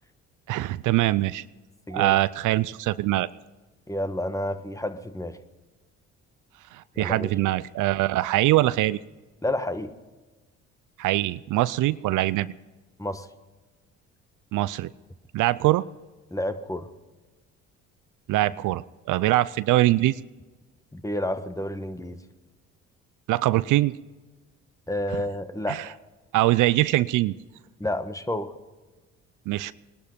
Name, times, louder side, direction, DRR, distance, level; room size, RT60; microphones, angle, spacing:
voice 1, 0.5-1.4 1.9-3.3 6.7-9.0 11.0-12.5 14.5-14.9 15.3-15.8 18.3-20.2 23.3-23.9 25.7-25.9 26.3-27.3 29.5-29.7, right 16 dB, 70° right, 17 dB, 0.5 m, -23 dB
voice 2, 1.9-2.2 3.9-5.4 7.0-7.3 9.4-9.9 13.0-13.3 16.3-16.9 20.9-22.2 24.9-26.0 27.8-28.5, left 1 dB, 10° left, 10 dB, 1.3 m, -30 dB
20.0 x 12.0 x 5.2 m, 1.3 s
supercardioid pair, 65°, 32 cm